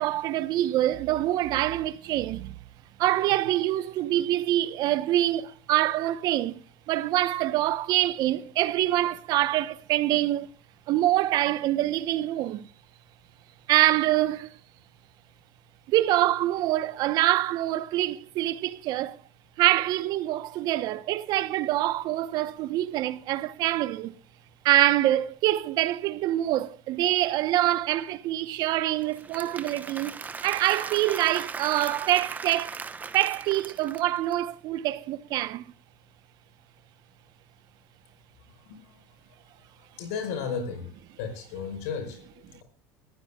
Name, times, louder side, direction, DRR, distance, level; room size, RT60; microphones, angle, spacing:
voice 1, 0.0-2.5 3.0-6.6 6.9-10.5 10.9-12.7 13.7-14.6 15.9-19.2 19.6-24.1 24.6-30.2 30.4-32.8 33.1-35.7, right 14 dB, 60° right, 1.0 m, -25 dB
Applause / Crowd, 29.0-34.3, right 5 dB, 20° right, 1.0 m, -38 dB
voice 2, 40.0-40.9 41.2-42.6, left 6 dB, 90° left, 5.0 m, -34 dB
21.5 x 15.0 x 2.4 m
supercardioid pair, 110°, 8 cm